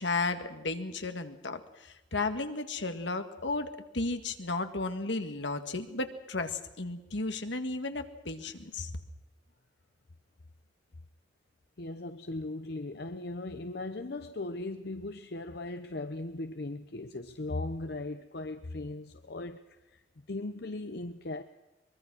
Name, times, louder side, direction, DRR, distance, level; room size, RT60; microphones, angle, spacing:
voice 1, 0.0-8.9, left 3 dB, 75° left, 8 dB, 1.8 m, -34 dB
voice 2, 11.8-19.6 19.9-20.0 20.3-21.4, left 2 dB, 55° left, 9 dB, 0.8 m, -38 dB
23.5 x 22.0 x 6.2 m, 1.0 s
head